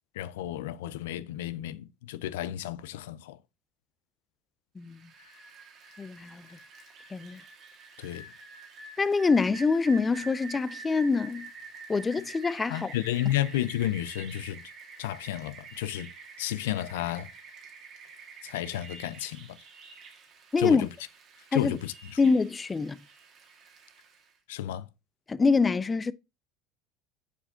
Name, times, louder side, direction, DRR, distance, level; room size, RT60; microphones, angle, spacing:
voice 1, 0.1-3.4 8.0-8.3 12.7-14.6 15.0-16.1 16.4-17.3 18.4-19.6 20.6-20.9 21.5-22.2 24.5-24.9, left 13 dB, 90° left, 0.4 m, -32 dB
Rain, 4.8-24.3, right 4 dB, 45° right, 1.7 m, -48 dB
voice 2, 6.0-6.4 7.1-7.4 9.0-11.5 11.9-12.9 20.5-20.9 21.5-21.8 22.2-23.0 25.3-26.1, left 4 dB, 20° left, 0.3 m, -25 dB
6.8 x 4.6 x 3.7 m
supercardioid pair, 115°, 0 cm